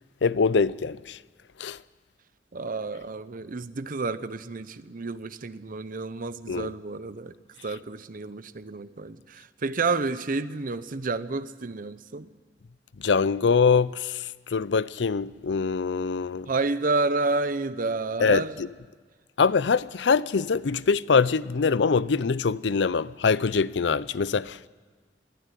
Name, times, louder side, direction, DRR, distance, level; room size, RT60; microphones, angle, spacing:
voice 1, 0.2-1.2 1.6-1.8 6.5-6.7 13.0-16.5 18.2-18.7 19.4-24.7, left 5 dB, 75° left, 0.5 m, -24 dB
voice 2, 2.5-7.3 7.6-12.3 16.5-18.5, right 3 dB, 50° right, 0.7 m, -30 dB
22.5 x 14.5 x 10.0 m
head